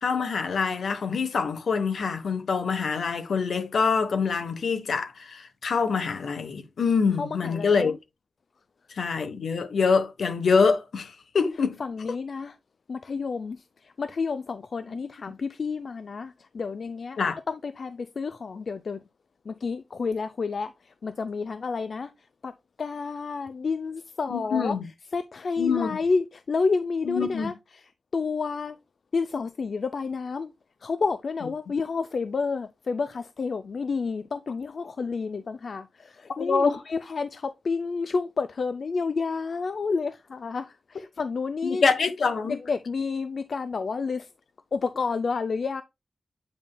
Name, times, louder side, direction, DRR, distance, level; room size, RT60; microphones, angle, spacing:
voice 1, 0.0-7.9 9.0-11.8 14.9-15.0 15.3-15.4 17.2-17.4 24.3-24.9 25.6-25.9 27.0-27.5 36.4-36.8 41.6-42.6, left 5 dB, 65° left, 1.0 m, -25 dB
voice 2, 7.2-8.0 11.8-12.5 12.9-17.2 17.5-19.0 19.5-22.1 22.4-22.5 22.8-24.7 25.1-27.8 28.1-28.8 29.1-30.5 30.8-41.8 42.5-44.3 44.7-45.8, left 4 dB, 50° left, 0.4 m, -30 dB
8.6 x 5.5 x 2.2 m
wide cardioid pair, 160°, 0 cm